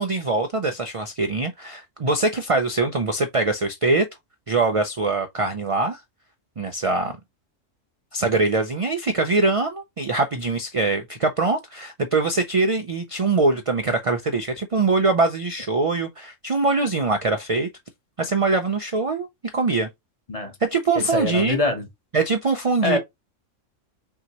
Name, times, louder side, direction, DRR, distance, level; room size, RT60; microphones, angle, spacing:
voice 1, 0.0-4.1 4.5-6.0 6.6-7.1 8.1-17.7 18.2-19.9 20.6-21.6 22.1-23.0, right 3 dB, 55° right, 0.3 m, -23 dB
voice 2, 21.0-21.9 22.8-23.0, left 2 dB, 30° left, 1.0 m, -24 dB
5.5 x 2.9 x 2.9 m
omnidirectional pair, 1.3 m